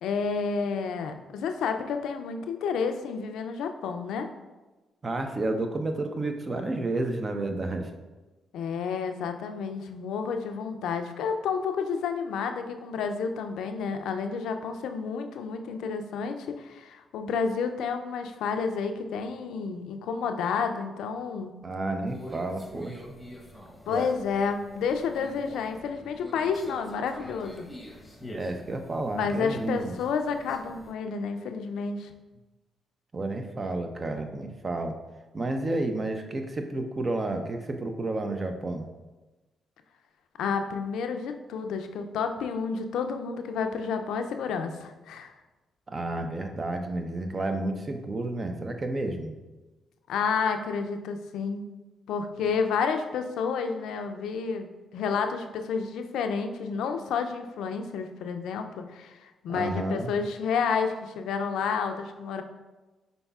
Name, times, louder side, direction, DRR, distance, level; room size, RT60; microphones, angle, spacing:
voice 1, 0.0-4.3 8.5-21.5 23.9-27.7 29.1-32.1 40.4-45.3 50.1-51.7 52.1-62.4, left 5 dB, 80° left, 6 dB, 0.4 m, -30 dB
voice 2, 5.0-7.9 21.6-23.2 28.3-29.9 33.1-34.9 35.3-38.9 45.9-49.4 59.5-60.1, right 2 dB, 40° right, 6 dB, 0.6 m, -31 dB
Conversation, 22.1-30.9, equal, 15° left, 0.9 m, -44 dB
5.3 x 4.0 x 2.3 m, 1.1 s
supercardioid pair, 60°, 0 cm